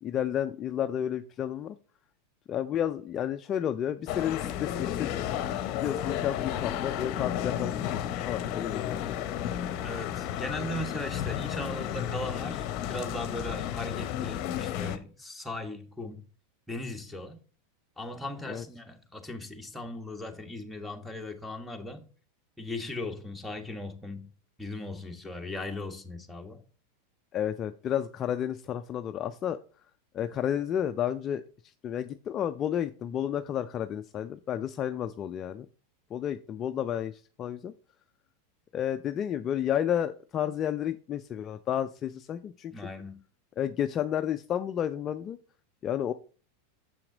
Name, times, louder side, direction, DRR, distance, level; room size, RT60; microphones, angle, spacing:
voice 1, 0.0-1.7 2.5-5.2 5.7-9.2 18.5-18.6 27.3-29.6 30.1-31.4 31.8-35.7 36.1-37.7 38.7-42.7 43.6-45.4 45.8-46.1, left 10 dB, 35° left, 0.4 m, -31 dB
sound 1, 4.1-15.0, left 10 dB, 50° left, 0.8 m, -32 dB
voice 2, 9.8-16.3 16.7-17.4 18.0-22.1 22.6-24.3 24.6-26.6 42.7-43.2, left 1 dB, ahead, 1.3 m, -38 dB
7.1 x 5.8 x 3.9 m
hypercardioid pair, 95°, 0 cm